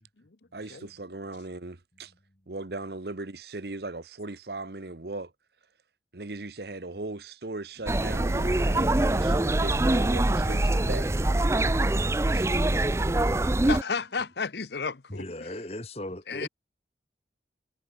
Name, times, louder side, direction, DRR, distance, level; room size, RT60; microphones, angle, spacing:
voice 1, 0.5-2.1 2.5-5.3 6.1-11.1 12.2-13.3, right 2 dB, 65° right, 1.2 m, -38 dB
sound 1, 7.8-14.3, equal, 40° right, 3.4 m, -54 dB
sound 2, 7.9-13.8, right 1 dB, 15° right, 0.4 m, -24 dB
voice 2, 11.5-11.8 15.1-16.5, left 1 dB, 35° left, 2.5 m, -38 dB
voice 3, 13.6-15.5 16.3-16.5, left 5 dB, 75° left, 0.9 m, -32 dB
head